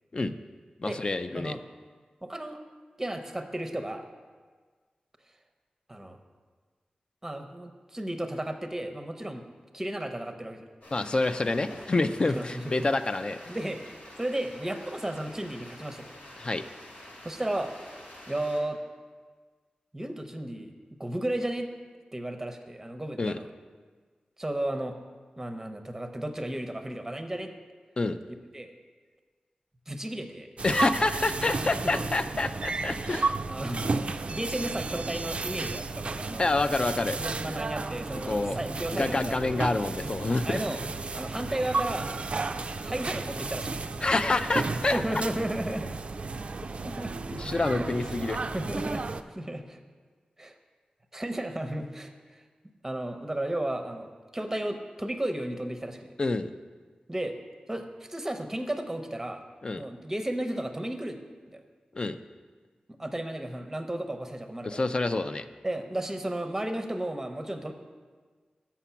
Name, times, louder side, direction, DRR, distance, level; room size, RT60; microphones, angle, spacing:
voice 1, 0.8-1.6 10.9-13.6 16.4-16.6 23.2-23.4 28.0-28.2 30.6-33.3 36.4-37.2 38.3-38.6 38.9-40.6 44.0-45.0 47.3-48.4 56.2-56.5 59.6-59.8 61.9-62.2 64.6-65.5, left 2 dB, 35° left, 10 dB, 0.3 m, -27 dB
voice 2, 2.2-2.6 3.0-4.0 5.9-6.2 7.2-9.5 9.7-10.6 12.2-12.9 13.5-13.8 14.2-16.1 17.2-18.0 18.3-18.8 19.9-21.7 22.1-23.5 24.4-24.9 25.4-27.5 28.5-28.7 29.9-30.5 31.5-31.9 33.5-33.8 34.3-36.5 37.2-39.6 40.5-40.8 41.1-42.4 42.8-43.9 44.9-45.9 46.8-47.1 47.8-47.9 48.5-49.8 50.4-50.6 51.1-52.4 52.8-56.1 57.1-57.4 57.7-59.4 59.8-61.2 61.5-61.6 63.0-64.8 65.6-67.7, right 1 dB, 15° right, 6 dB, 0.6 m, -34 dB
sound 1, 10.8-18.6, left 1 dB, 85° left, 1.6 m, -48 dB
sound 2, 30.6-49.2, right 3 dB, 50° right, 0.3 m, -33 dB
7.1 x 5.9 x 5.7 m, 1.5 s
wide cardioid pair, 95°, 3 cm